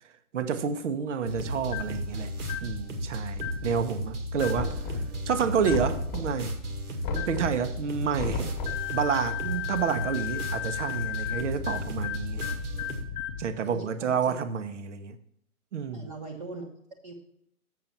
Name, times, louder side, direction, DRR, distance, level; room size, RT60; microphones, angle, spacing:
voice 1, 0.3-2.3 2.6-5.0 5.3-6.5 7.3-8.5 8.9-12.5 13.4-15.2 15.7-16.1, right 6 dB, 55° right, 0.9 m, -29 dB
sound 1, 1.2-13.0, equal, 85° right, 1.9 m, -35 dB
sound 2, 1.7-2.0 2.4-2.8 3.3-3.7 4.4-4.7 5.6-5.9 7.1-7.4 8.7-13.4, left 11 dB, 35° left, 0.7 m, -35 dB
Knock, 4.5-5.3 5.7-6.5 7.0-7.7 8.2-8.9, left 3 dB, 15° left, 1.3 m, -33 dB
voice 2, 13.6-14.2 15.9-16.7 17.0-17.1, right 3 dB, 30° right, 0.9 m, -40 dB
7.6 x 6.6 x 5.5 m
hypercardioid pair, 150°, 44 cm